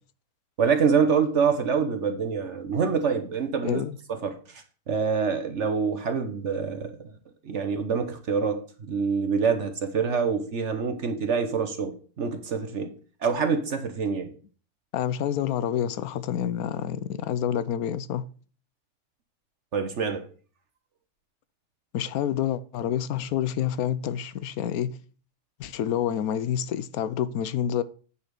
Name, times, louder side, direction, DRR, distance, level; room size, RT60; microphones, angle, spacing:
voice 1, 0.6-3.8 4.1-7.1 7.4-12.9 13.2-14.3 19.7-20.3, right 6 dB, 55° right, 1.2 m, -26 dB
voice 2, 3.6-4.0 14.9-18.3 21.9-25.0 25.6-27.8, left 10 dB, 85° left, 1.1 m, -28 dB
9.6 x 4.2 x 6.7 m
omnidirectional pair, 1.5 m